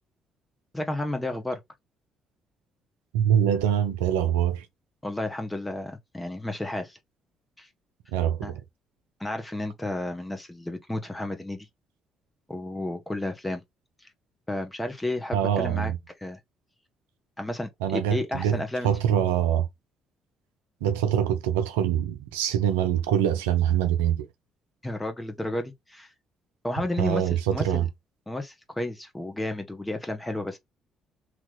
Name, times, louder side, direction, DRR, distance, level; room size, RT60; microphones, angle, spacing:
voice 1, 0.7-1.6 5.0-7.0 7.6-7.7 8.4-8.6 9.2-11.7 12.5-13.6 14.5-15.9 16.2-16.4 17.4-18.9 24.8-26.1 26.6-27.9 28.3-30.6, left 1 dB, 15° left, 1.2 m, -32 dB
voice 2, 3.1-4.7 8.1-8.6 15.3-16.0 17.8-19.7 20.8-24.3 27.0-27.9, right 10 dB, 80° right, 0.5 m, -24 dB
3.1 x 2.9 x 3.8 m
hypercardioid pair, 50°, 0 cm